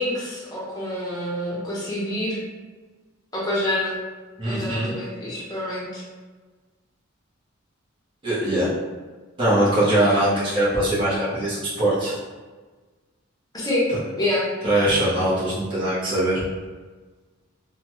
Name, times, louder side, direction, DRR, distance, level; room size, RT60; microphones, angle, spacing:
voice 1, 0.0-2.4 3.3-3.9 4.4-6.0 13.5-13.9 14.2-14.5, left 1 dB, 20° left, -6 dB, 0.8 m, -27 dB
voice 2, 4.4-4.9 8.2-8.7 9.4-12.2 14.6-16.4, right 1 dB, 25° right, -11 dB, 0.9 m, -21 dB
2.9 x 2.2 x 3.0 m, 1.3 s
head